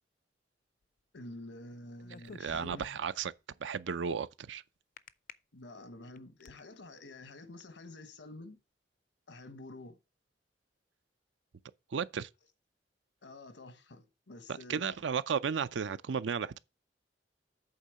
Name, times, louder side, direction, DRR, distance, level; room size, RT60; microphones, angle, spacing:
voice 1, 1.1-2.8 5.5-8.6 9.3-10.0 13.2-15.0, left 2 dB, 85° left, 1.2 m, -49 dB
sound 1, 2.0-3.3 5.0-5.3 5.9-6.6, left 4 dB, 50° left, 0.4 m, -50 dB
voice 2, 2.4-3.3 3.6-4.6 11.9-12.3 14.7-16.6, right 6 dB, 80° right, 0.5 m, -34 dB
8.4 x 3.7 x 6.3 m
head